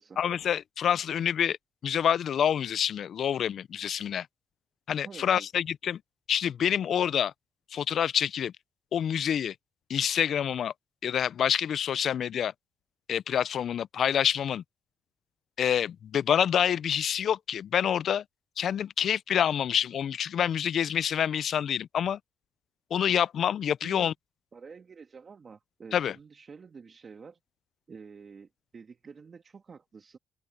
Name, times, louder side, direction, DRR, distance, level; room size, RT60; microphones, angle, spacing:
voice 1, 0.2-1.6 1.8-4.3 4.9-6.0 6.3-7.3 7.7-8.5 8.9-9.5 9.9-10.7 11.0-12.5 13.1-14.6 15.6-18.2 18.6-22.2 22.9-24.1 25.9-26.1, left 9 dB, 60° left, 0.4 m, -27 dB
voice 2, 5.0-5.5 23.0-23.1 23.8-24.1 24.5-27.4 27.9-30.2, right 5 dB, 40° right, 1.6 m, -48 dB
open air
cardioid pair, 90°, 0 cm